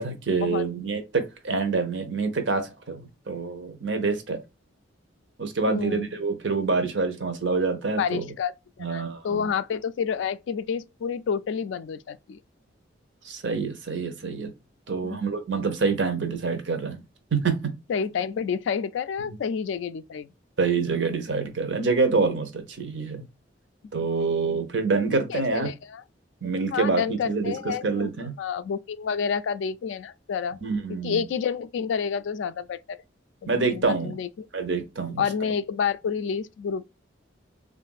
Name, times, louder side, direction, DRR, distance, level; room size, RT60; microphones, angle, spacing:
voice 1, 0.0-4.4 5.4-8.3 8.8-9.5 13.2-14.5 14.9-17.0 17.3-17.7 19.3-19.4 20.6-23.2 23.9-25.7 26.4-28.3 30.6-31.2 33.5-34.2 34.5-35.2, right 4 dB, 70° right, 0.7 m, -26 dB
voice 2, 5.7-6.1 8.0-12.4 15.0-15.2 17.9-20.3 23.9-24.6 25.1-26.0 26.7-28.1 28.4-30.6 31.0-33.0 33.4-34.5 35.2-36.8, left 6 dB, 75° left, 0.3 m, -29 dB
3.6 x 2.5 x 2.3 m
head